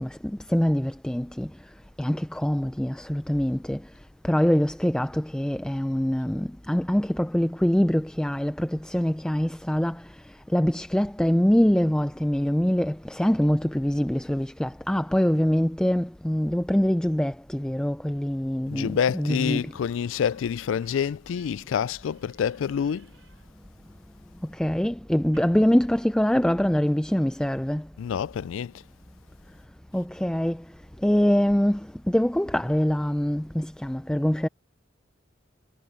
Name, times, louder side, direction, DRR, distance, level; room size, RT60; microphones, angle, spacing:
voice 1, 0.0-1.5 2.0-3.8 4.2-19.7 24.5-27.9 29.9-30.6 31.0-34.5, equal, 5° left, 0.3 m, -24 dB
voice 2, 18.7-23.1 28.0-28.7, left 7 dB, 85° left, 0.3 m, -27 dB
Slam / Squeak, 19.3-26.8, right 4 dB, 85° right, 5.7 m, -61 dB
head